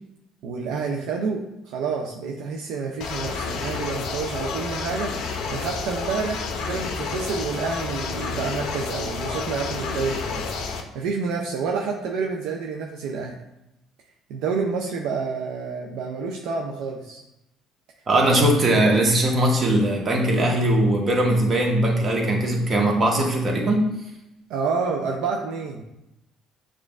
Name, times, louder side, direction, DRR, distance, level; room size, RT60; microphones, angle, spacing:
voice 1, 0.4-5.1 5.5-10.5 10.7-13.4 14.3-17.2 24.5-25.8, right 5 dB, 75° right, 0 dB, 0.4 m, -28 dB
sound 1, 3.0-10.8, left 4 dB, 70° left, 0.5 m, -30 dB
voice 2, 18.1-23.8, right 1 dB, 40° right, 0 dB, 1.1 m, -20 dB
6.3 x 2.4 x 2.3 m, 0.89 s
supercardioid pair, 70°, 0 cm